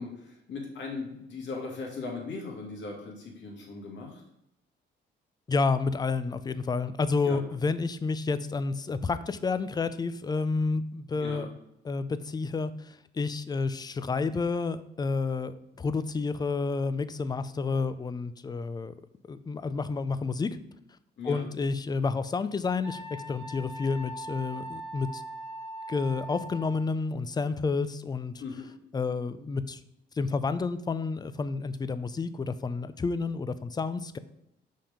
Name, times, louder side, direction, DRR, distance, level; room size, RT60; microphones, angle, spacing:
voice 1, 0.0-4.2 7.2-7.4 11.2-11.5 21.2-21.5 28.4-28.7, left 3 dB, 65° left, 0 dB, 1.9 m, -38 dB
voice 2, 5.5-11.5 11.8-18.9 19.3-20.6 21.2-23.0 23.3-25.2 25.9-28.3 28.9-29.8 30.2-34.2, left 4 dB, 20° left, 13 dB, 0.4 m, -30 dB
Wind instrument woodwind instrument, 22.8-26.9, right 1 dB, 10° right, 1.7 m, -41 dB
5.6 x 3.6 x 4.9 m, 0.81 s
cardioid pair, 90°, 20 cm